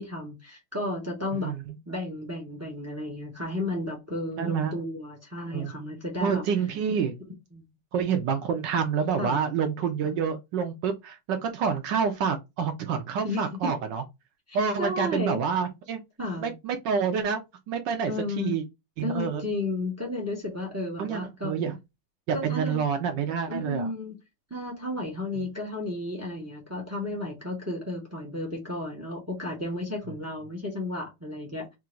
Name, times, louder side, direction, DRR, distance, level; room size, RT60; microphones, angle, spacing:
voice 1, 0.0-1.5 1.9-6.4 7.5-7.7 9.2-9.4 13.2-13.7 14.5-15.4 16.2-16.5 18.1-18.6 19.0-21.5 22.3-22.8 23.5-24.2 24.5-31.7, left 2 dB, 20° right, 0.4 m, -33 dB
voice 2, 4.4-4.7 5.5-5.7 6.2-7.2 7.9-14.0 14.5-16.0 16.4-17.4 17.7-18.6 19.0-19.4 21.0-21.8 22.4-23.9 25.4-25.5, right 6 dB, 75° right, 1.1 m, -28 dB
3.7 x 2.5 x 4.3 m
omnidirectional pair, 2.3 m